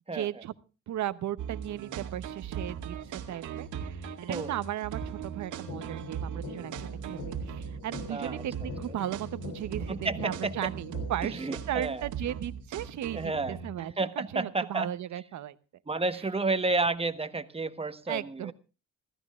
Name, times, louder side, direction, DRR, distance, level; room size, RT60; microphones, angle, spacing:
voice 1, 0.1-0.5 0.9-15.5 16.1-16.2 18.1-18.5, right 11 dB, 70° right, 14 dB, 0.9 m, -36 dB
sound 1, 1.4-13.9, right 7 dB, 90° right, 2.1 m, -39 dB
sound 2, 5.7-11.7, left 3 dB, 85° left, 3.1 m, -44 dB
voice 2, 8.1-8.4 9.9-10.7 11.4-12.1 13.1-13.6 14.0-14.9 15.9-18.5, right 3 dB, 20° right, 10 dB, 1.1 m, -31 dB
27.0 x 13.5 x 2.4 m, 0.32 s
cardioid pair, 90°, 30 cm